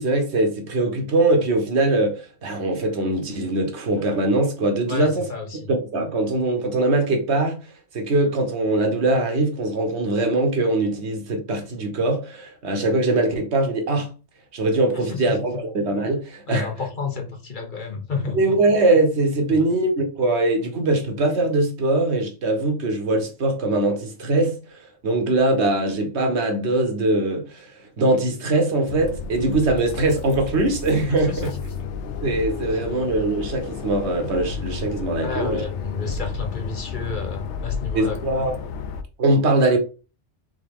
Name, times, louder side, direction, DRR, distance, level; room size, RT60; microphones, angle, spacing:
voice 1, 0.0-5.3 5.7-14.1 14.5-16.7 18.3-31.5 32.2-35.6 36.0-36.2 37.9-38.5 39.2-39.8, right 2 dB, 65° right, 1.2 m, -22 dB
voice 2, 4.9-5.7 14.9-15.4 16.5-18.5 19.5-19.7 31.3-31.6 35.2-38.3, left 4 dB, 45° left, 1.0 m, -31 dB
sound 1, 28.9-39.0, left 6 dB, 75° left, 0.9 m, -32 dB
3.7 x 3.7 x 3.5 m
omnidirectional pair, 1.2 m